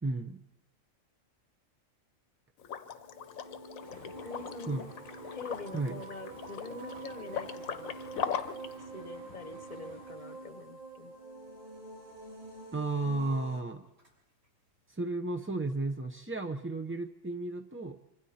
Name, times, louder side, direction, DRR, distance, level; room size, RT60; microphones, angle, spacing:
voice 1, 0.0-0.4 4.7-4.8 5.7-6.0 12.7-13.9 14.9-18.0, right 2 dB, 15° right, 4 dB, 0.4 m, -33 dB
Liquid, 2.6-8.7, left 7 dB, 90° left, 1.3 m, -40 dB
sound 1, 3.0-13.6, right 3 dB, 30° right, 3.8 m, -47 dB
sound 2, 3.8-15.0, right 1 dB, 55° right, 6.4 m, -56 dB
voice 2, 3.9-4.9 5.3-8.0 8.9-11.1, left 3 dB, 35° left, 11 dB, 1.0 m, -45 dB
25.0 x 25.0 x 4.3 m, 0.96 s
omnidirectional pair, 1.4 m